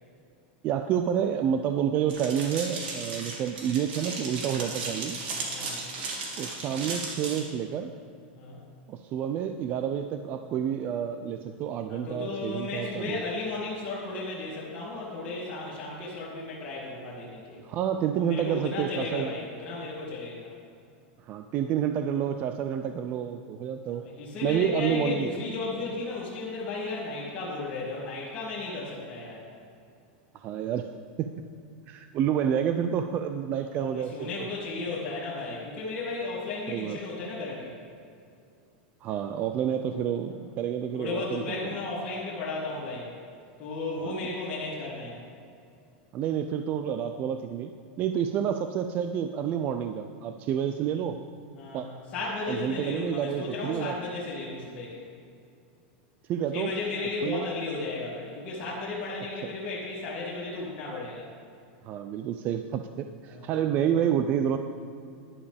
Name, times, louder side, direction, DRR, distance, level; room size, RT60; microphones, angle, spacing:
voice 1, 0.6-5.2 6.4-7.9 8.9-13.2 17.6-19.3 21.3-24.0 24.4-25.3 30.4-30.9 31.2-31.3 31.9-34.5 36.7-37.0 39.0-41.8 44.0-44.3 46.1-47.7 48.0-51.2 51.7-51.9 52.5-54.0 56.3-56.7 57.2-57.5 59.4-59.5 61.8-64.6, right 9 dB, 30° right, 8 dB, 0.4 m, -29 dB
sound 1, 2.1-7.4, right 3 dB, 70° right, 2.4 m, -35 dB
voice 2, 5.5-5.8 8.4-8.6 11.9-17.6 18.3-20.5 23.9-29.5 33.7-37.7 40.9-43.1 43.6-45.2 51.6-55.0 56.5-61.3 63.3-63.6, left 3 dB, 25° left, -9 dB, 2.3 m, -34 dB
11.5 x 11.0 x 3.5 m, 2.4 s
supercardioid pair, 160°, 6 cm